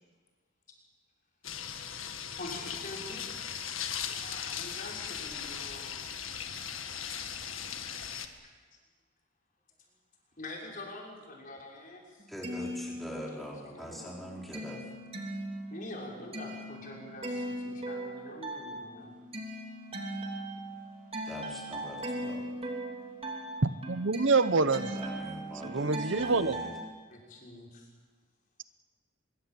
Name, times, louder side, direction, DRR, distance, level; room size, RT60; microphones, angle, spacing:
sound 1, 1.4-8.3, left 8 dB, 85° left, 1.9 m, -38 dB
voice 1, 2.3-3.7 4.0-5.9 10.4-12.3 12.5-12.6 13.6-14.2 15.7-19.1 19.7-20.2 20.6-21.1 22.6-22.8 23.2-23.6 27.1-27.9, left 2 dB, 40° left, -2 dB, 6.3 m, -46 dB
sound 2, 12.2-13.6 14.0-26.8, right 1 dB, 30° right, 3.0 m, -39 dB
voice 2, 12.3-14.8 21.2-22.5 25.0-26.7, equal, ahead, -3 dB, 4.7 m, -43 dB
voice 3, 23.6-25.0 25.6-26.7, right 3 dB, 70° right, 13 dB, 0.9 m, -27 dB
24.0 x 23.0 x 7.9 m, 1.4 s
head